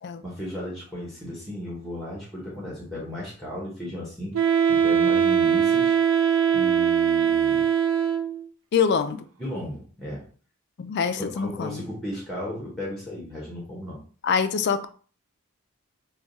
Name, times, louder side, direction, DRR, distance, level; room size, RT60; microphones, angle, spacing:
voice 1, 0.2-6.0 6.5-7.7 9.4-10.3 11.2-14.0, left 1 dB, ahead, 1.0 m, -35 dB
Wind instrument woodwind instrument, 4.3-8.5, right 8 dB, 70° right, 0.5 m, -21 dB
voice 2, 8.7-9.3 10.8-11.8 14.2-14.9, left 6 dB, 50° left, 0.3 m, -25 dB
3.5 x 2.3 x 3.9 m
head